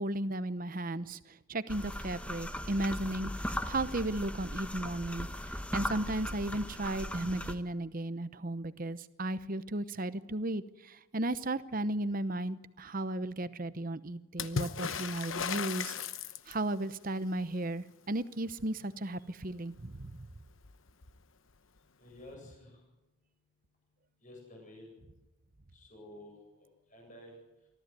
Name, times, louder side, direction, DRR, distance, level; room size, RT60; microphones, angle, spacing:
voice 1, 0.0-15.9 16.5-20.2, right 1 dB, 40° right, 14 dB, 0.9 m, -35 dB
sound 1, 1.7-7.6, left 1 dB, 5° left, 1.1 m, -38 dB
Water / Splash splatter, 14.4-16.8 20.1-20.2 20.4-21.2 22.3-22.4, left 6 dB, 65° left, 1.0 m, -36 dB
voice 2, 22.0-22.7 24.2-24.8 25.7-26.3 26.9-27.3, left 1 dB, 35° left, 0 dB, 7.8 m, -51 dB
24.0 x 15.0 x 9.4 m, 1.0 s
head